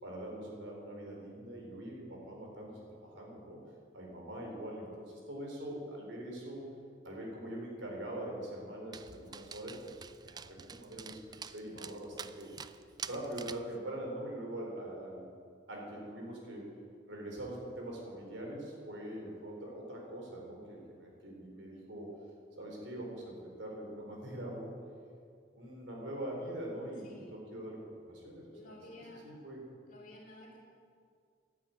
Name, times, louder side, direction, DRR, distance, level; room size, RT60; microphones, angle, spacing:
voice 1, 0.0-3.6 3.9-6.6 7.0-12.5 13.0-15.3 15.7-16.7 17.1-22.1 22.6-24.8 25.5-28.8 29.2-29.6, right 1 dB, 80° right, -1 dB, 3.9 m, -43 dB
Dog, 8.9-13.7, right 6 dB, 20° right, 0.3 m, -47 dB
voice 2, 27.0-27.4 28.5-29.2 29.9-30.6, left 1 dB, 45° left, -3 dB, 3.5 m, -53 dB
11.5 x 9.3 x 9.2 m, 2.2 s
head